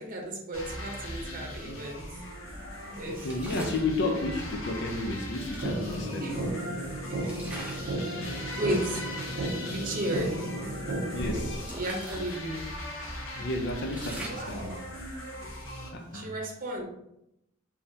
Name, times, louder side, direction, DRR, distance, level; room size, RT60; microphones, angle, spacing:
voice 1, 0.0-2.2 2.9-3.4 4.0-4.2 6.2-6.4 7.5-8.0 8.6-9.0 9.7-10.3 11.8-12.6 14.3-14.7 16.1-16.9, right 1 dB, 45° right, -1 dB, 0.8 m, -34 dB
sound 1, 0.5-15.9, left 1 dB, 85° left, 0.9 m, -40 dB
voice 2, 2.6-6.5 11.1-11.8 13.4-14.9 15.9-16.3, left 2 dB, 60° left, 4 dB, 0.6 m, -32 dB
sound 2, 3.2-3.9 5.1-5.2 5.5-6.7 7.2-8.0 8.4-8.6 9.3-9.4 9.7-10.0 10.5-12.4 12.8-12.9 13.3-15.8, right 1 dB, 5° right, 0.6 m, -42 dB
sound 3, 5.6-11.6, right 1 dB, 75° right, 0.6 m, -34 dB
3.8 x 2.8 x 2.7 m, 0.82 s
head